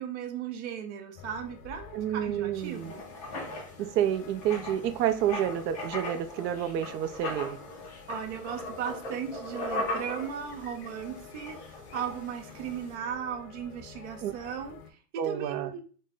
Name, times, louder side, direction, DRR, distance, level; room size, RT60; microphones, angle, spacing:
voice 1, 0.0-3.0 8.1-15.8, right 8 dB, 45° right, 0.6 m, -37 dB
sound 1, 1.2-14.9, left 7 dB, 70° left, 0.8 m, -49 dB
voice 2, 1.9-2.9 3.8-7.6 14.2-14.3 15.2-15.7, right 10 dB, 90° right, 0.6 m, -29 dB
Writing, 2.6-12.9, left 1 dB, 25° left, 0.4 m, -39 dB
3.7 x 2.1 x 3.7 m
supercardioid pair, 175°, 49 cm